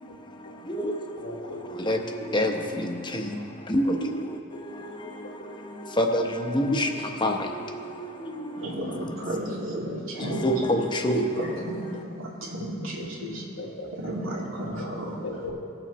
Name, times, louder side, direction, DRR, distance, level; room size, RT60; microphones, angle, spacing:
voice 1, 0.7-1.0 1.6-3.4 3.7-4.2 4.8-5.2 5.7-7.5 7.9-8.0 8.3-8.6 10.2-11.3, equal, 25° left, 3 dB, 0.8 m, -27 dB
voice 2, 1.2-1.6 4.5-4.6 9.9-10.0 10.3-10.4 13.0-14.1 14.6-14.9 15.2-15.5, left 3 dB, 85° left, 1 dB, 1.4 m, -38 dB
voice 3, 8.6-10.5 11.3-11.8 12.2-13.4 13.9-15.2, right 1 dB, 85° right, -4 dB, 2.4 m, -33 dB
19.0 x 7.1 x 3.1 m, 2.5 s
head